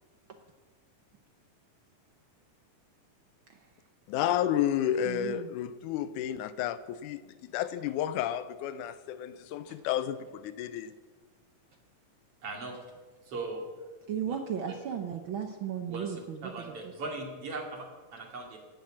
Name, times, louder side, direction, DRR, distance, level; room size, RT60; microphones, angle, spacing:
voice 1, 4.1-10.9, left 11 dB, 85° left, 14 dB, 2.1 m, -31 dB
voice 2, 5.1-5.5 14.1-16.4 16.7-16.8, right 8 dB, 80° right, 6 dB, 1.1 m, -35 dB
voice 3, 12.4-12.8 13.3-13.6 14.2-14.4 14.7-14.8 15.9-18.6, right 3 dB, 50° right, 2 dB, 3.3 m, -39 dB
16.5 x 12.0 x 7.3 m, 1.4 s
omnidirectional pair, 3.6 m